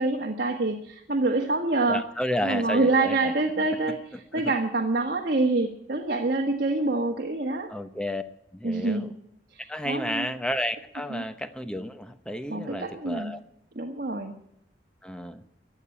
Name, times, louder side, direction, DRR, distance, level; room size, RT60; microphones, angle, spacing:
voice 1, 0.0-2.0 2.4-4.0 4.3-7.7 8.6-9.1 9.8-10.3 11.1-11.2 12.5-13.3 13.7-14.3, right 2 dB, 55° right, 1 dB, 1.5 m, -26 dB
voice 2, 1.9-3.3 4.3-4.4 7.7-8.2 8.5-9.1 9.7-13.4 15.0-15.4, left 1 dB, 5° left, 9 dB, 0.9 m, -32 dB
15.5 x 9.2 x 8.8 m, 0.76 s
head